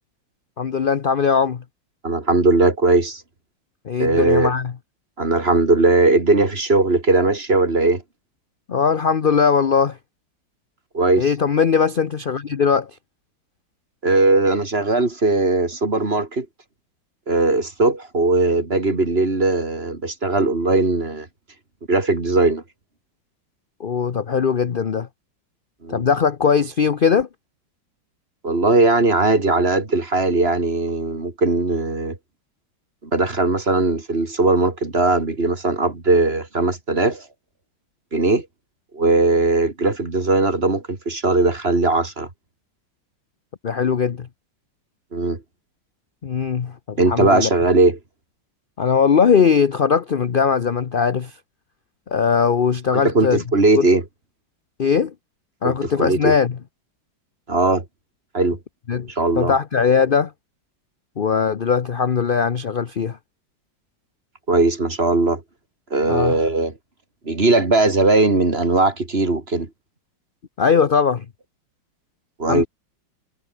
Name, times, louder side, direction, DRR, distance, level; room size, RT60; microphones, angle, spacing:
voice 1, 0.6-1.6 3.8-4.7 8.7-10.0 11.2-12.9 23.8-25.1 25.9-27.3 43.6-44.3 46.2-47.5 48.8-51.3 52.1-53.4 53.7-53.9 54.8-55.1 55.6-56.5 58.9-59.1 59.4-60.3 61.2-63.2 66.1-66.4 70.6-71.3 72.5-72.6, left 6 dB, 55° left, 0.5 m, -19 dB
voice 2, 2.0-3.2 4.0-4.5 5.2-8.0 10.9-11.3 14.0-16.5 17.3-21.3 21.9-22.6 25.8-26.0 28.4-32.2 33.1-37.2 38.1-38.5 38.9-42.3 45.1-45.4 47.0-48.0 52.9-54.0 55.6-56.3 57.5-57.8 58.3-58.6 59.1-59.5 64.5-65.4 65.9-66.7 67.2-69.7 72.4-72.7, right 2 dB, 30° right, 3.2 m, -19 dB
omnidirectional pair, 2.1 m